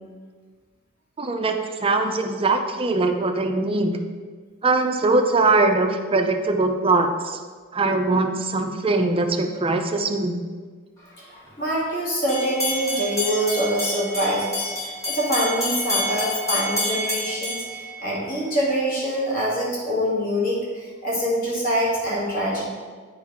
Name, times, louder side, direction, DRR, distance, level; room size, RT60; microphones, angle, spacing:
voice 1, 1.2-4.0 4.6-7.4 7.7-10.4, right 3 dB, 25° right, 5 dB, 0.5 m, -21 dB
voice 2, 11.6-14.7 15.0-22.7, equal, 40° left, -5 dB, 2.1 m, -24 dB
sound 1, 12.3-18.5, left 1 dB, 15° left, 1.9 m, -28 dB
8.3 x 4.7 x 3.6 m, 1.5 s
head